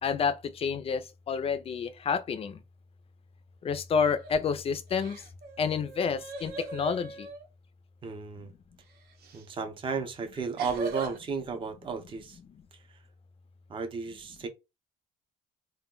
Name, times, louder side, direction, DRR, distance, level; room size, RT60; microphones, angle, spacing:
voice 1, 0.0-2.6 3.6-5.2 5.6-7.3, left 6 dB, 35° left, 0.4 m, -29 dB
sound 1, 4.1-4.5 4.9-7.4 9.2-9.4 10.6-11.2, right 3 dB, 65° right, 0.7 m, -40 dB
voice 2, 8.0-8.5 9.3-12.4 12.7-13.0 13.7-14.5, right 5 dB, 30° right, 0.5 m, -34 dB
2.2 x 2.1 x 3.6 m
cardioid pair, 110°, 17 cm